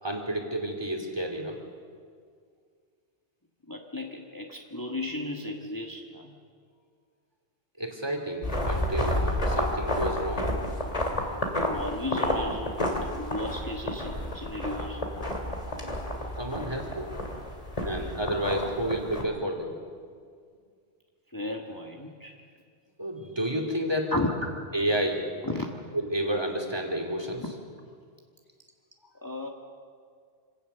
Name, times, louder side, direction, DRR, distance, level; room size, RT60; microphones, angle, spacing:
voice 1, 0.0-1.6 7.8-10.5 11.1-11.2 16.1-17.1 17.8-19.7 23.0-24.1 24.7-25.2 25.9-27.4, right 1 dB, 25° right, 2 dB, 2.8 m, -30 dB
voice 2, 3.7-6.3 11.6-12.8 13.1-15.0 21.3-22.4 24.1-24.4 25.4-25.7 27.4-27.5 29.2-29.5, left 2 dB, 20° left, 0 dB, 1.6 m, -34 dB
sound 1, 8.4-19.2, left 1 dB, 35° left, 2.7 m, -30 dB
26.0 x 17.5 x 6.8 m, 2.1 s
omnidirectional pair, 1.1 m